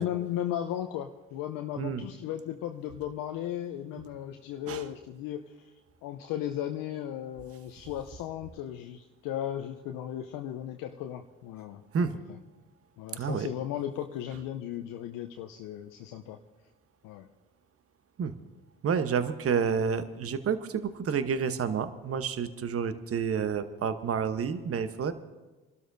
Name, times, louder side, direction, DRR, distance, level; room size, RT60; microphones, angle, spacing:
voice 1, 0.0-5.7 6.0-12.1 13.0-16.4 17.0-17.3, left 11 dB, 70° left, 4 dB, 0.7 m, -36 dB
voice 2, 13.2-13.5 18.2-18.3 18.8-25.1, right 6 dB, 40° right, 11 dB, 1.0 m, -29 dB
29.0 x 12.5 x 2.6 m, 1.1 s
hypercardioid pair, 55°, 35 cm